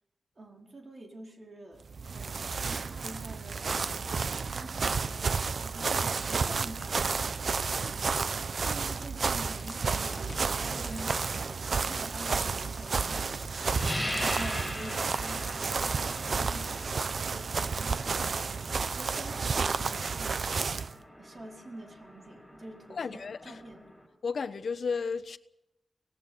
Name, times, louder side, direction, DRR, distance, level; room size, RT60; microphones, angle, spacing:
voice 1, 0.4-1.9 2.1-7.4 7.7-8.3 8.6-11.2 11.7-13.4 14.2-20.7 21.2-23.9, right 2 dB, 45° right, 4.6 m, -47 dB
sound 1, 1.9-20.9, right 5 dB, 70° right, 0.7 m, -31 dB
sound 2, 9.5-15.1, left 3 dB, 40° left, 1.6 m, -50 dB
sound 3, 13.8-24.1, left 1 dB, 5° right, 6.3 m, -41 dB
voice 2, 22.9-23.6 24.2-25.4, left 5 dB, 80° left, 1.1 m, -33 dB
25.5 x 19.0 x 7.0 m
wide cardioid pair, 125°, 0 cm